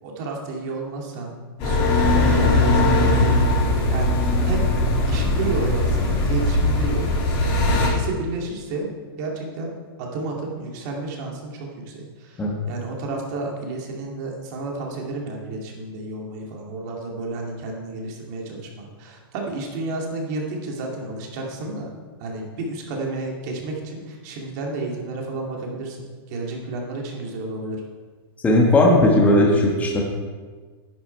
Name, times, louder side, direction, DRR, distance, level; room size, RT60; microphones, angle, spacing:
voice 1, 0.0-1.3 1.6-3.3 3.9-4.7 5.1-7.4 7.7-8.9 9.2-9.7 10.0-21.9 22.2-26.0 26.3-27.8, right 3 dB, 45° right, -1 dB, 2.5 m, -31 dB
sound 1, 1.6-7.9, left 2 dB, 40° left, 3.6 m, -20 dB
voice 2, 28.4-30.0, left 1 dB, 10° left, -1 dB, 1.4 m, -16 dB
10.5 x 9.0 x 4.6 m, 1.5 s
hypercardioid pair, 150°, 13 cm